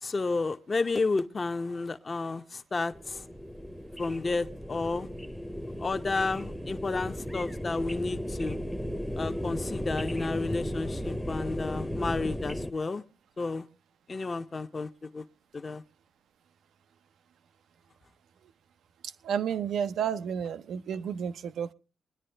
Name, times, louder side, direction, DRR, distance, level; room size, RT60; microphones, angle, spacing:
voice 1, 0.0-3.3 4.0-5.1 5.8-8.6 9.2-13.0 13.4-13.7 14.1-15.2 15.5-15.8, left 3 dB, 35° left, 0.7 m, -31 dB
sound 1, 2.9-12.7, equal, ahead, 0.7 m, -35 dB
voice 2, 19.2-21.7, right 8 dB, 80° right, 0.6 m, -31 dB
23.5 x 10.5 x 3.3 m
cardioid pair, 100°, 0 cm